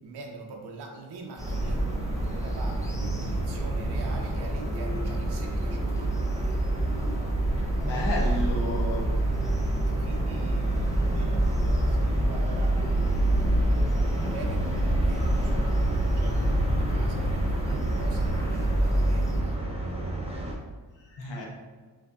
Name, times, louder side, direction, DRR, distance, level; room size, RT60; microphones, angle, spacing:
voice 1, 0.0-6.1 6.4-6.6 9.9-19.6, right 3 dB, 60° right, 1 dB, 0.7 m, -44 dB
sound 1, 1.4-19.4, equal, 5° left, 0.6 m, -28 dB
sound 2, 1.4-20.5, right 2 dB, 15° right, 1.0 m, -30 dB
voice 2, 7.8-9.0 21.1-21.5, left 2 dB, 70° left, -1 dB, 1.2 m, -31 dB
5.5 x 3.3 x 2.6 m, 1.5 s
cardioid pair, 80°, 45 cm